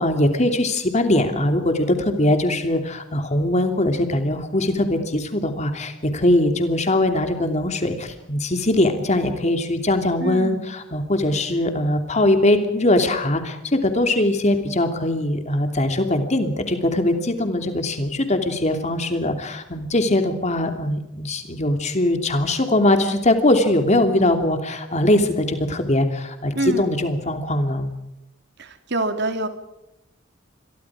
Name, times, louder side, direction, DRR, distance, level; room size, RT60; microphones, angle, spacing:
voice 1, 0.0-27.9, left 1 dB, 35° left, 6 dB, 2.8 m, -21 dB
voice 2, 10.2-10.7 26.5-26.9 28.6-29.5, right 2 dB, 55° right, 8 dB, 2.7 m, -26 dB
27.5 x 23.0 x 4.9 m, 0.89 s
head